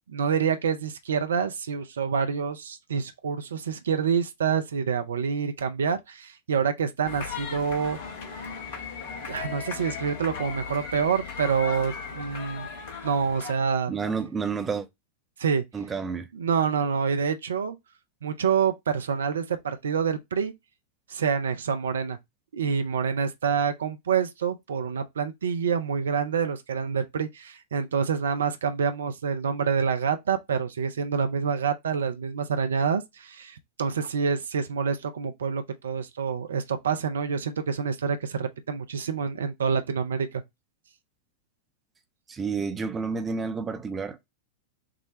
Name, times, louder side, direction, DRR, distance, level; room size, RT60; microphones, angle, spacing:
voice 1, 0.1-8.0 9.3-12.7 13.0-13.9 15.4-15.6 16.3-17.8 18.2-20.5 21.1-22.2 22.5-40.4, right 6 dB, 65° right, 0.5 m, -27 dB
sound 1, 7.0-13.5, left 6 dB, 50° left, 0.9 m, -37 dB
voice 2, 13.9-14.9 15.7-16.3 42.3-44.2, right 5 dB, 20° right, 0.6 m, -30 dB
6.0 x 2.2 x 3.0 m
figure-of-eight pair, 90°, 0 cm